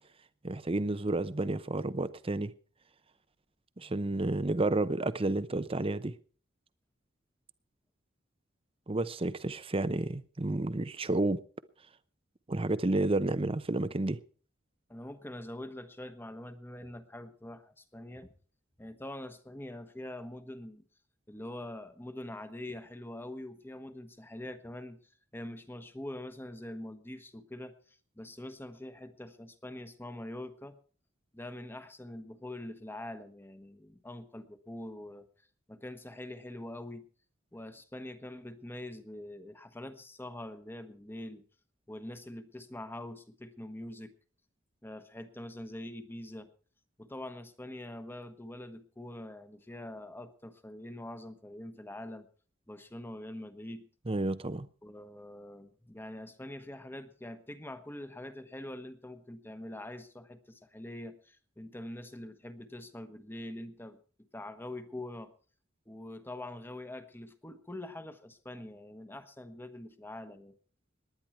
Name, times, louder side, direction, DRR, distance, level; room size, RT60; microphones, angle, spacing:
voice 1, 0.4-2.5 3.8-6.1 8.9-11.4 12.5-14.2 54.1-54.7, right 2 dB, 30° right, 0.7 m, -31 dB
voice 2, 14.9-18.3 18.8-20.8 21.3-25.0 25.3-30.8 31.3-35.3 35.7-37.1 37.5-41.4 41.9-44.1 44.8-46.5 47.0-52.3 52.7-53.9 54.8-65.3 65.9-70.5, left 1 dB, 10° left, 1.2 m, -44 dB
19.0 x 10.5 x 4.6 m
head